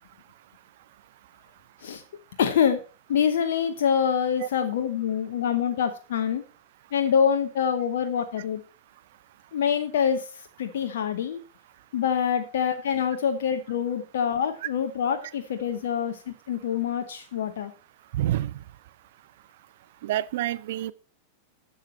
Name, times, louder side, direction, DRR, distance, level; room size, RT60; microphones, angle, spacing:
voice 1, 2.4-2.8 3.1-6.4 6.9-8.6 9.5-11.4 11.9-17.7, left 8 dB, 60° left, 0.9 m, -25 dB
voice 2, 18.1-18.6 20.0-20.9, right 13 dB, 55° right, 0.5 m, -27 dB
11.5 x 7.2 x 4.3 m
figure-of-eight pair, 90°, 0 cm